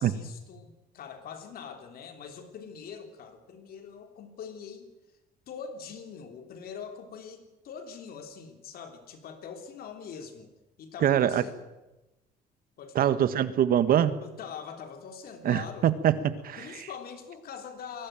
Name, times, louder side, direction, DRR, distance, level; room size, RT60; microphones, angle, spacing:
voice 1, 0.0-4.9 5.5-10.5 10.8-11.6 12.8-13.2 14.2-15.9 16.4-18.1, left 6 dB, 60° left, 6 dB, 3.4 m, -43 dB
voice 2, 11.0-11.4 12.9-14.2 15.4-16.9, right 10 dB, 60° right, 13 dB, 1.5 m, -24 dB
21.5 x 17.0 x 9.1 m, 1.0 s
cardioid pair, 110°, 17 cm